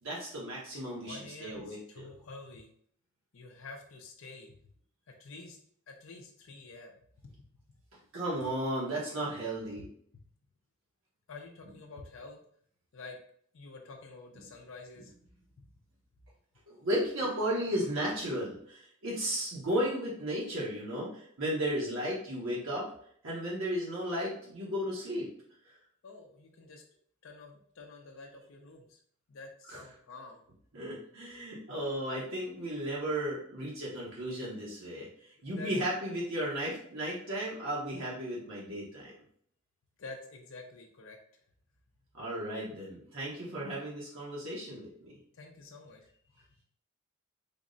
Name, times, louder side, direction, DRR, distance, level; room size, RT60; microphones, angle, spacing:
voice 1, 0.0-2.1 8.1-9.9 16.7-22.9 23.2-25.3 29.7-29.8 30.7-39.1 42.1-45.1, equal, 65° right, -5 dB, 0.9 m, -34 dB
voice 2, 0.9-2.7 3.3-4.6 5.1-5.6 5.9-7.5 10.1-10.2 11.3-12.4 12.9-13.2 13.5-15.1 15.6-15.7 26.0-26.8 27.2-29.0 29.3-30.4 31.7-31.8 35.4-36.1 40.0-41.4 45.3-46.1, left 3 dB, 65° left, 2 dB, 0.5 m, -48 dB
3.5 x 2.1 x 3.8 m, 0.62 s
head